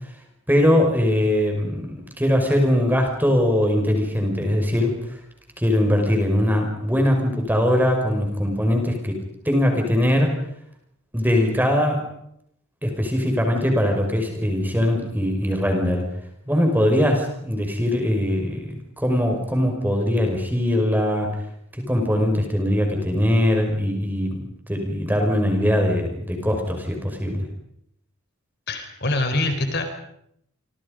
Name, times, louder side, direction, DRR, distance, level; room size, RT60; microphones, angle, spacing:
voice 1, 0.5-5.2 5.6-9.2 9.4-10.4 11.1-12.1 12.8-16.1 16.5-21.3 21.7-27.5, left 1 dB, 10° right, 3 dB, 5.6 m, -21 dB
voice 2, 28.7-29.8, left 2 dB, 50° left, 6 dB, 4.3 m, -24 dB
28.0 x 26.5 x 5.3 m, 0.73 s
head